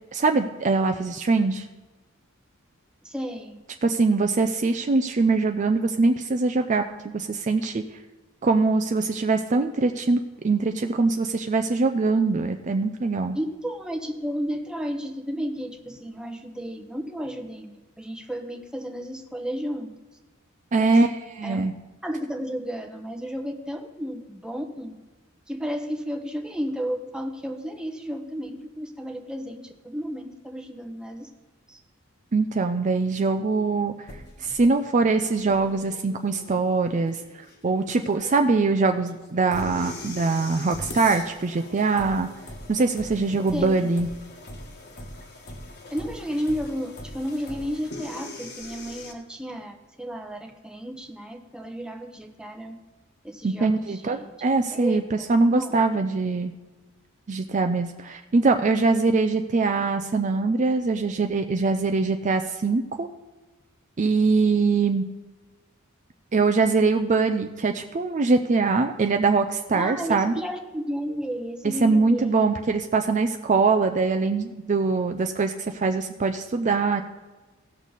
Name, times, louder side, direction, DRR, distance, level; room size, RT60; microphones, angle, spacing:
voice 1, 0.1-1.7 3.8-7.8 8.4-13.4 20.7-21.7 32.3-33.9 34.4-37.2 37.6-42.3 42.7-44.1 53.4-56.5 57.3-63.1 64.0-65.0 66.3-70.3 71.8-77.0, right 3 dB, 35° right, 6 dB, 0.4 m, -23 dB
voice 2, 3.0-3.6 13.3-19.9 20.8-21.0 21.4-21.6 22.0-24.9 25.5-31.3 31.7-31.8 43.5-43.9 45.9-52.8 53.2-54.3 54.7-55.8 69.7-72.6, equal, 5° right, 3 dB, 0.9 m, -33 dB
sound 1, 34.1-49.1, left 1 dB, 50° left, 1.4 m, -41 dB
16.5 x 6.4 x 4.0 m, 1.2 s
head